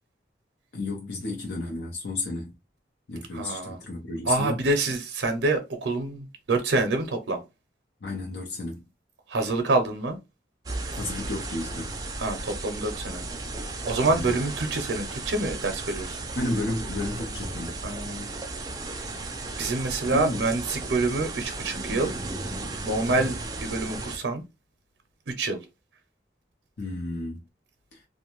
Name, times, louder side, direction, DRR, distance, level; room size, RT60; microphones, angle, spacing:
voice 1, 0.7-2.5 3.1-4.6 8.0-8.8 11.0-11.9 14.0-14.4 16.4-17.8 20.1-20.4 23.1-23.3 26.8-27.4 27.9-28.0, left 2 dB, 75° left, 0.6 m, -32 dB
voice 2, 3.3-3.8 4.3-7.4 9.3-10.2 12.2-13.3 13.8-16.2 17.8-18.2 19.6-22.1 22.8-24.4 25.3-25.6, right 2 dB, 90° right, 0.6 m, -27 dB
sound 1, 10.7-24.2, right 2 dB, 20° right, 0.4 m, -35 dB
2.5 x 2.2 x 3.0 m
head